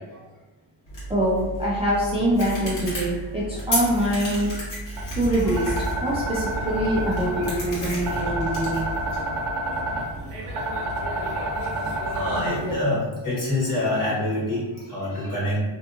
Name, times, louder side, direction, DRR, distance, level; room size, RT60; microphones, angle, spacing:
sound 1, 0.9-9.2, equal, 85° left, 1.4 m, -33 dB
voice 1, 1.1-4.5 5.1-5.7 6.0-8.8, right 1 dB, 15° right, -8 dB, 0.4 m, -24 dB
sound 2, 4.9-12.7, right 1 dB, 85° right, 0.8 m, -29 dB
voice 2, 12.1-15.6, left 1 dB, 40° left, -8 dB, 1.3 m, -26 dB
2.6 x 2.5 x 2.4 m, 1.2 s
wide cardioid pair, 140°, 50 cm